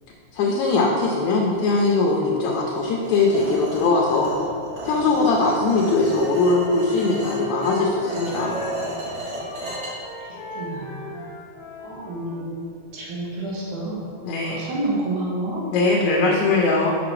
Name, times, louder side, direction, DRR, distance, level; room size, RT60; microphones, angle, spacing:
voice 1, 0.3-4.3 4.8-8.5 14.2-14.6 15.7-16.9, left 3 dB, 80° left, -2 dB, 2.0 m, -20 dB
sound 1, 3.0-9.9, right 1 dB, 65° right, 2.7 m, -34 dB
Wind instrument woodwind instrument, 6.1-12.4, equal, 65° left, 1.1 m, -38 dB
voice 2, 9.7-11.3 11.8-12.5 12.9-14.2 14.5-15.6, right 2 dB, 80° right, -5 dB, 2.7 m, -30 dB
6.2 x 6.0 x 3.1 m, 2.4 s
omnidirectional pair, 3.4 m